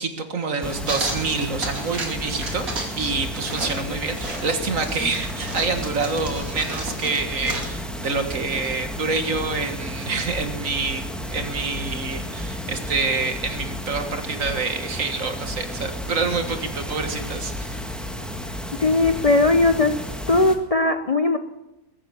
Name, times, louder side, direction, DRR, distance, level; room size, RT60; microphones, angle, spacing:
voice 1, 0.0-17.8, right 4 dB, 70° right, 7 dB, 2.0 m, -27 dB
sound 1, 0.6-20.6, left 1 dB, ahead, 1.5 m, -32 dB
sound 2, 0.9-2.1 2.4-3.0 3.2-7.8, right 2 dB, 85° right, 3.3 m, -33 dB
voice 2, 18.8-19.9 20.3-21.4, left 2 dB, 35° left, 8 dB, 0.7 m, -18 dB
21.5 x 8.7 x 7.1 m, 0.93 s
omnidirectional pair, 1.4 m